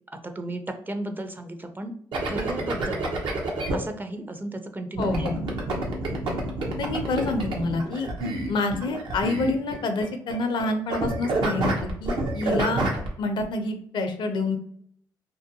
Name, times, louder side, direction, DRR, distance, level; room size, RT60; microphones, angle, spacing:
voice 1, 0.1-1.9 2.3-3.2 3.7-5.4, right 1 dB, 20° right, 7 dB, 0.4 m, -34 dB
sound 1, 2.1-3.8 5.0-10.1 10.3-10.6 10.9-13.1, right 2 dB, 70° right, 0.7 m, -28 dB
voice 2, 5.0-5.4 6.8-8.1 8.5-12.9 13.2-14.6, left 3 dB, 65° left, 6 dB, 0.5 m, -27 dB
2.5 x 2.1 x 2.7 m, 0.64 s
supercardioid pair, 50°, 9 cm